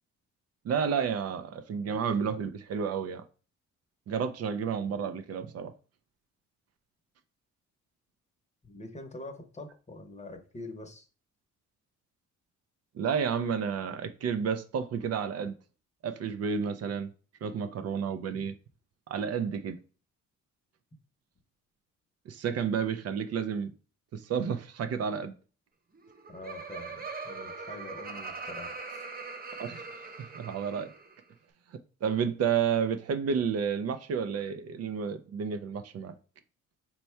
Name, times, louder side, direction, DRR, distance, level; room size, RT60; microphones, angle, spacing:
voice 1, 0.6-3.2 4.1-5.7 12.9-15.5 16.0-17.1 17.4-18.5 19.1-19.8 22.3-23.7 24.1-25.3 29.6-29.9 30.3-30.9 32.0-36.1, right 7 dB, 55° right, 0.5 m, -31 dB
voice 2, 8.6-11.1 26.3-29.1, left 2 dB, 25° left, 0.8 m, -45 dB
Laughter, 25.9-31.2, right 4 dB, 30° right, 0.8 m, -41 dB
4.2 x 2.3 x 4.3 m
cardioid pair, 90°, 30 cm